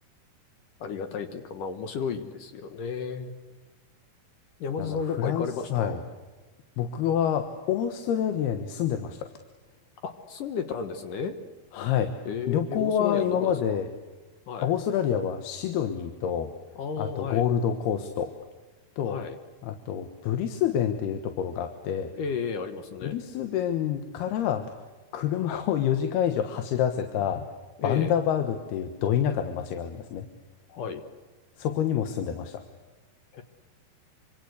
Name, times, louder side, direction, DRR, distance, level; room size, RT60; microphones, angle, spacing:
voice 1, 0.8-3.3 4.6-6.0 10.0-11.4 12.3-13.8 14.5-14.7 16.8-17.4 19.0-19.4 22.1-23.2 27.8-28.1 30.7-31.0 33.3-33.4, left 5 dB, 65° left, 8 dB, 2.7 m, -33 dB
voice 2, 4.8-6.0 6.8-9.3 11.7-12.1 12.5-13.9 14.6-16.5 17.0-18.3 19.0-19.2 19.6-22.1 23.0-24.7 25.1-27.5 27.8-30.3 31.6-32.6, left 9 dB, 90° left, 7 dB, 3.3 m, -27 dB
26.5 x 26.0 x 8.1 m, 1.3 s
omnidirectional pair, 4.4 m